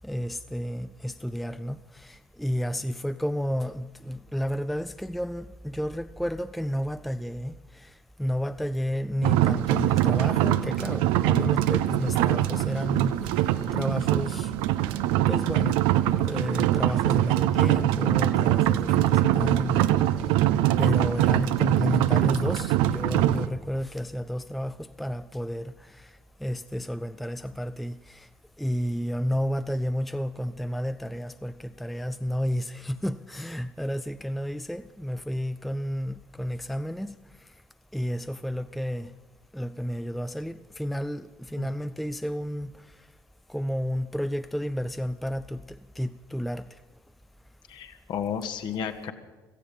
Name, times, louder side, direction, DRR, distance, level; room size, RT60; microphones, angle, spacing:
voice 1, 0.0-7.9 8.2-13.4 13.7-14.5 15.3-15.8 16.1-20.0 20.8-26.1 26.4-28.3 28.6-37.2 37.9-39.1 39.5-42.7 43.5-46.7, equal, ahead, 0.4 m, -31 dB
sound 1, 9.2-23.5, right 13 dB, 60° right, 0.6 m, -23 dB
voice 2, 47.7-49.1, left 7 dB, 50° left, 1.5 m, -32 dB
17.0 x 15.0 x 5.3 m
figure-of-eight pair, 55°, 10 cm